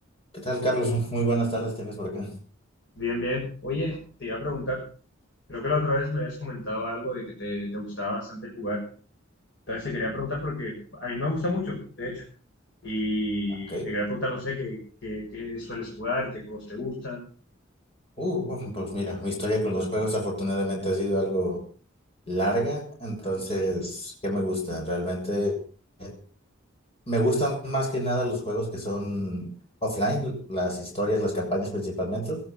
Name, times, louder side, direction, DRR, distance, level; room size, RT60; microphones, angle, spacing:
voice 1, 0.3-2.4 13.7-13.9 18.2-21.6 22.3-25.6 26.0-26.1 27.1-29.5 29.8-32.4, equal, 30° left, -1 dB, 6.9 m, -28 dB
voice 2, 3.0-4.8 5.5-8.8 9.7-12.2 12.8-17.2, left 1 dB, 60° left, -2 dB, 6.5 m, -30 dB
18.0 x 12.0 x 5.9 m, 0.41 s
head